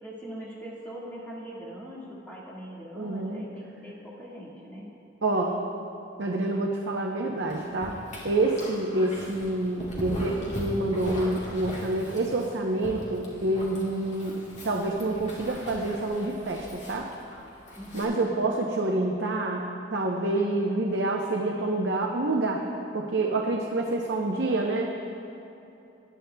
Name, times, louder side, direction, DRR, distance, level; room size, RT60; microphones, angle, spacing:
voice 1, 0.0-4.9 17.8-18.5, equal, 10° left, -6 dB, 1.8 m, -41 dB
voice 2, 3.0-3.4 5.2-5.6 6.2-8.0 8.2-17.1 17.9-22.7 22.9-24.9, right 2 dB, 65° right, 0 dB, 0.7 m, -27 dB
Dog, 7.5-18.0, equal, 40° left, 2.3 m, -40 dB
19.0 x 10.5 x 2.2 m, 2.8 s
head